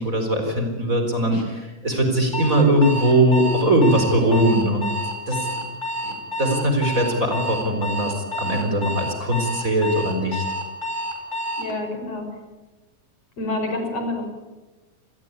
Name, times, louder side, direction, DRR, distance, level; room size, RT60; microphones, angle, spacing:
voice 1, 0.0-1.4 1.8-4.9 5.3-5.5 6.0-10.4, right 1 dB, 25° right, 4 dB, 4.4 m, -20 dB
Alarm, 2.3-11.7, equal, 20° left, 5.5 m, -29 dB
voice 2, 11.6-12.3 13.4-14.3, left 2 dB, 55° left, 4 dB, 6.2 m, -28 dB
28.0 x 21.0 x 9.8 m, 1.2 s
omnidirectional pair, 3.5 m